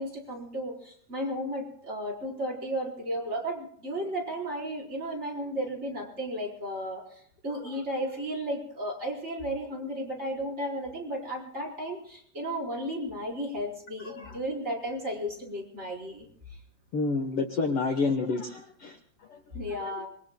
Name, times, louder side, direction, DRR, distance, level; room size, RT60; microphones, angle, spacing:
voice 1, 0.0-7.0 7.4-16.3 19.5-20.1, equal, 20° right, 1 dB, 4.2 m, -34 dB
voice 2, 7.5-7.8 14.0-14.4 16.9-19.0 19.3-19.4 19.7-19.9, left 3 dB, 80° left, 6 dB, 1.2 m, -30 dB
26.5 x 22.5 x 2.2 m, 0.62 s
omnidirectional pair, 4.2 m